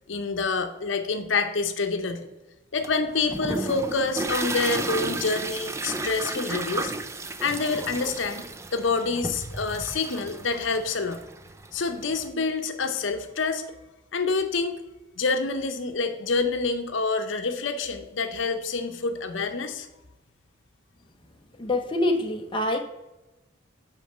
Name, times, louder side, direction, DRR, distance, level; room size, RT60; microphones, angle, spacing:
voice 1, 0.1-2.3 2.7-6.9 7.4-11.2 11.7-13.6 14.1-14.7 15.2-19.9, left 4 dB, 70° left, 7 dB, 0.8 m, -27 dB
sound 1, 2.8-12.3, right 2 dB, 15° right, 0.3 m, -33 dB
voice 2, 21.6-22.8, left 1 dB, 25° left, 3 dB, 0.7 m, -25 dB
6.2 x 5.2 x 6.6 m, 0.99 s
head